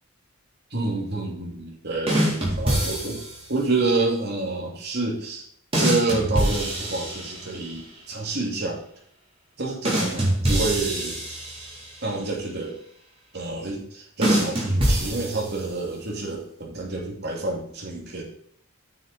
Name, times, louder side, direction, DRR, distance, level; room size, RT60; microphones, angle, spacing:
voice 1, 0.7-3.2 3.5-5.4 5.8-8.8 9.6-11.2 12.0-12.8 13.3-18.2, right 3 dB, 50° right, -2 dB, 2.7 m, -28 dB
sound 1, 2.1-3.5 5.7-7.7 9.8-12.0 14.2-15.8, right 1 dB, 25° right, 3.6 m, -25 dB
9.2 x 6.6 x 4.1 m, 0.66 s
head